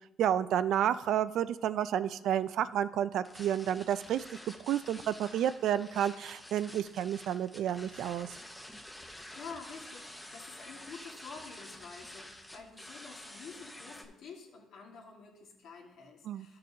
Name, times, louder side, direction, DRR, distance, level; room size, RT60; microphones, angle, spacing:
voice 1, 0.2-4.2 4.7-8.3 16.3-16.5, right 10 dB, 70° right, 14 dB, 0.3 m, -30 dB
sound 1, 3.2-14.0, left 1 dB, 5° left, 0.8 m, -49 dB
voice 2, 9.3-16.6, left 5 dB, 70° left, 0 dB, 1.8 m, -49 dB
12.0 x 6.7 x 2.8 m, 0.93 s
cardioid pair, 115°, 0 cm